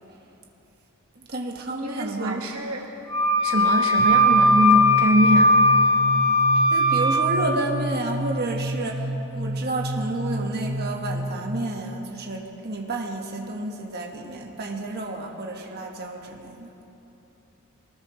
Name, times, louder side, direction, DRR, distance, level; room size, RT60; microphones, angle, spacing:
voice 1, 1.2-2.4 6.5-16.7, right 2 dB, 45° right, 1 dB, 1.5 m, -31 dB
voice 2, 1.8-2.8 3.4-5.6, equal, 75° right, 2 dB, 1.1 m, -24 dB
Wind instrument woodwind instrument, 3.1-7.3, left 1 dB, 70° left, 4.5 m, -18 dB
sound 1, 4.0-11.5, right 1 dB, 25° left, 3.8 m, -31 dB
23.0 x 19.5 x 3.2 m, 3.0 s
head